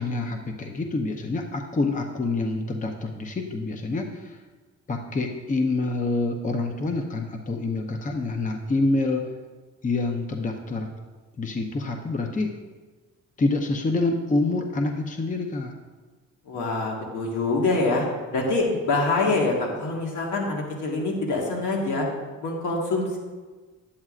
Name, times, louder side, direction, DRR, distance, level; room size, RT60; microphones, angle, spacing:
voice 1, 0.0-4.4 4.9-9.3 9.8-10.9 11.4-12.5 13.4-15.7, left 2 dB, 25° left, 4 dB, 0.7 m, -27 dB
voice 2, 16.5-18.1 18.3-22.1 22.4-23.2, left 3 dB, 80° left, -1 dB, 1.7 m, -25 dB
11.0 x 8.6 x 2.5 m, 1.3 s
cardioid pair, 90°, 30 cm